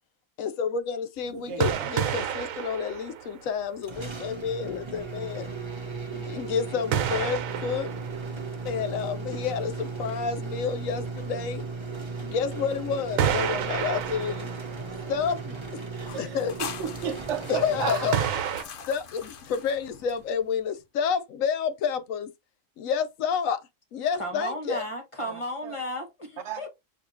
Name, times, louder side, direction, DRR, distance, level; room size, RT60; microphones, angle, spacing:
voice 1, 0.4-5.5 6.1-7.9 8.6-11.6 12.2-14.5 15.1-15.8 16.2-16.5 17.5-18.2 18.9-22.3 22.8-23.6 23.9-24.8, left 6 dB, 85° left, 1.0 m, -29 dB
voice 2, 1.3-1.9 16.0-18.6 25.2-25.8 26.4-26.6, right 8 dB, 65° right, 0.9 m, -34 dB
sound 1, 1.6-3.8 4.2-4.3 6.9-8.8 11.7-11.8 13.2-15.1 15.4-15.5 18.1-18.6, right 9 dB, 85° right, 1.1 m, -29 dB
sound 2, 3.8-18.8, right 4 dB, 25° right, 0.8 m, -36 dB
sound 3, 16.0-20.6, left 6 dB, 55° left, 0.7 m, -42 dB
voice 3, 24.1-26.7, equal, 25° left, 1.1 m, -34 dB
6.5 x 2.8 x 2.6 m
omnidirectional pair, 1.4 m